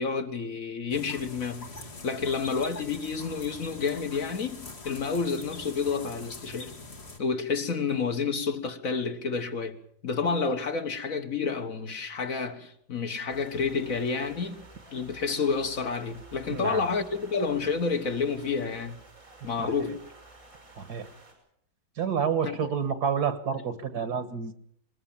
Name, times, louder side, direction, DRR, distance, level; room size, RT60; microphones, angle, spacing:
voice 1, 0.0-1.7 2.0-6.7 7.2-9.8 10.0-14.6 14.9-19.0 19.4-20.0 22.4-22.6, left 5 dB, 60° left, 1.8 m, -29 dB
sound 1, 0.9-7.2, left 3 dB, 40° left, 2.2 m, -43 dB
sound 2, 13.3-21.3, right 2 dB, 50° right, 6.5 m, -51 dB
voice 2, 16.5-16.9 19.4-19.9 20.8-21.1 22.0-24.5, right 7 dB, 80° right, 2.0 m, -29 dB
20.5 x 20.5 x 7.2 m
omnidirectional pair, 1.7 m